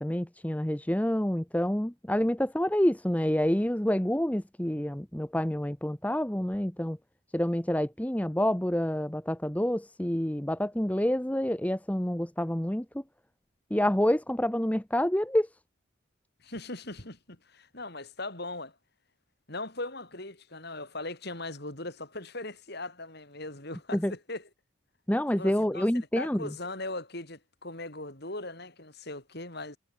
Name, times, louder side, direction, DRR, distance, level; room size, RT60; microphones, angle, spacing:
voice 1, 0.0-7.0 7.3-12.8 13.7-15.5 23.9-24.1 25.1-26.5, equal, 5° left, 0.8 m, -28 dB
voice 2, 16.4-18.8 19.5-24.5 25.3-25.9 26.2-29.8, left 2 dB, 50° left, 5.9 m, -39 dB
head